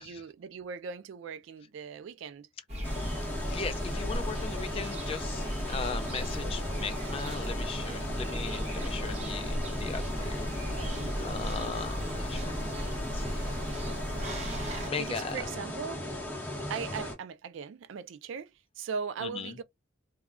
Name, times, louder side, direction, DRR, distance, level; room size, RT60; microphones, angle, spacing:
voice 1, 0.0-2.5 10.6-11.3 14.7-16.0 16.7-19.6, right 6 dB, 75° right, 0.3 m, -39 dB
sound 1, 2.7-14.9, equal, 35° right, 0.7 m, -35 dB
sound 2, 2.8-17.1, left 1 dB, 10° left, 0.8 m, -38 dB
voice 2, 3.2-10.5 10.7-12.6 13.0-13.5 14.4-15.5 19.2-19.6, left 5 dB, 30° left, 0.3 m, -39 dB
2.2 x 2.2 x 3.5 m
head